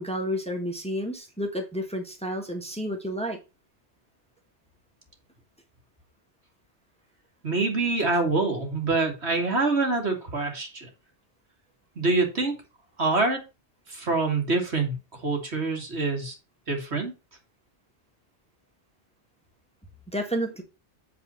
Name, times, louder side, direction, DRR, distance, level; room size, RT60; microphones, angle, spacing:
voice 1, 0.0-3.4 20.1-20.6, equal, 5° left, 1.5 m, -30 dB
voice 2, 7.4-10.9 12.0-12.5 13.0-13.4 13.9-16.4 16.7-17.1, right 3 dB, 70° right, 2.5 m, -25 dB
8.6 x 4.2 x 5.5 m
omnidirectional pair, 1.2 m